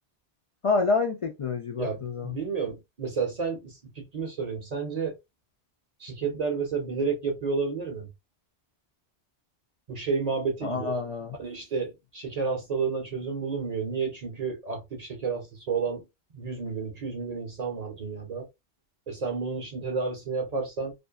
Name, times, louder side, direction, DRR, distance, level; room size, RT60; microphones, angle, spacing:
voice 1, 0.6-2.3 10.6-11.4, left 4 dB, 60° left, 0.3 m, -27 dB
voice 2, 1.8-5.2 6.0-8.1 9.9-10.9 11.4-16.1 16.3-18.5 19.1-20.9, right 5 dB, 45° right, 0.6 m, -31 dB
2.5 x 2.3 x 2.2 m
omnidirectional pair, 1.1 m